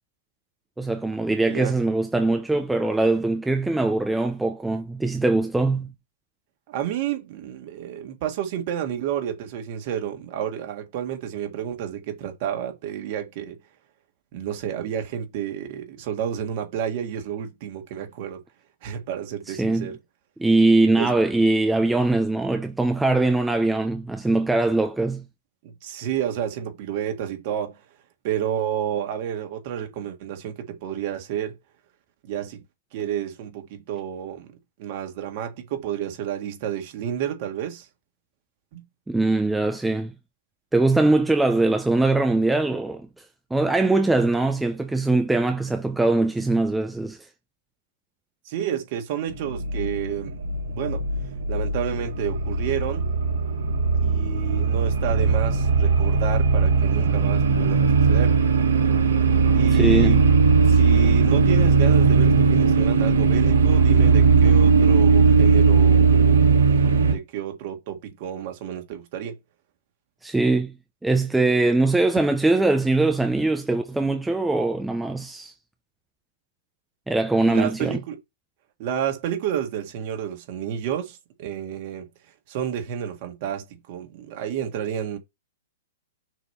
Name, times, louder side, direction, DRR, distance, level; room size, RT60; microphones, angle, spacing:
voice 1, 0.8-5.9 19.5-19.9 20.4-25.2 39.1-40.1 40.7-43.1 43.5-47.2 59.7-60.2 70.2-70.7 71.0-75.5 77.1-78.0, right 2 dB, 5° right, 0.6 m, -22 dB
voice 2, 6.7-13.6 14.3-18.4 18.8-20.0 21.0-21.1 25.8-27.8 28.2-31.5 32.2-32.6 32.9-34.5 34.8-37.9 38.7-38.8 48.5-50.4 50.7-51.1 51.5-53.1 53.9-58.4 59.5-60.3 60.7-69.4 77.5-78.2 78.8-82.1 82.5-85.2, right 9 dB, 45° right, 1.7 m, -30 dB
sound 1, 49.3-67.1, right 4 dB, 80° right, 1.7 m, -18 dB
6.3 x 3.1 x 5.4 m
hypercardioid pair, 140°, 0 cm